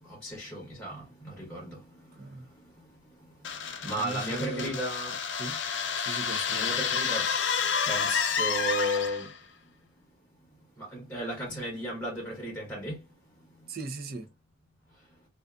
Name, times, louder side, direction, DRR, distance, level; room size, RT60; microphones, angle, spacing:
voice 1, 0.1-1.8 3.8-5.2 6.5-7.3 7.9-9.3 10.8-13.0, equal, 10° left, 0.8 m, -34 dB
sound 1, 3.4-9.4, left 6 dB, 70° left, 0.5 m, -30 dB
voice 2, 4.0-4.7 5.4-5.6 6.0-6.7 13.7-14.3, right 3 dB, 50° right, 0.5 m, -38 dB
2.5 x 2.4 x 2.3 m
head